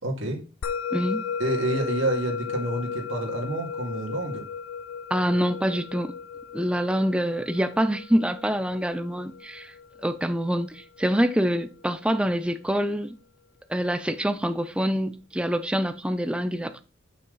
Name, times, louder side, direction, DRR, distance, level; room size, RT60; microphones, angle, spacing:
voice 1, 0.0-0.4 1.4-4.5, right 1 dB, 70° right, 2.1 m, -28 dB
Musical instrument, 0.6-11.2, left 6 dB, 90° left, 0.4 m, -35 dB
voice 2, 0.9-1.2 5.1-6.1 6.5-9.7 10.0-13.2 13.7-16.8, equal, 5° right, 0.4 m, -25 dB
7.2 x 5.9 x 3.9 m
head